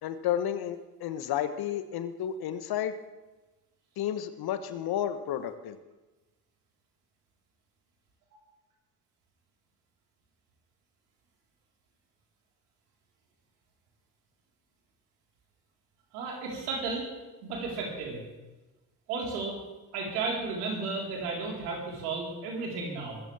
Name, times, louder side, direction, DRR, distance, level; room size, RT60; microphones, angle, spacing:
voice 1, 0.0-2.9 4.0-5.8, left 10 dB, 55° left, 10 dB, 1.3 m, -32 dB
voice 2, 16.1-17.1 17.4-18.2 19.1-19.6 19.9-23.2, right 4 dB, 75° right, -2 dB, 4.3 m, -33 dB
23.0 x 14.0 x 3.5 m, 1.1 s
figure-of-eight pair, 55°, 46 cm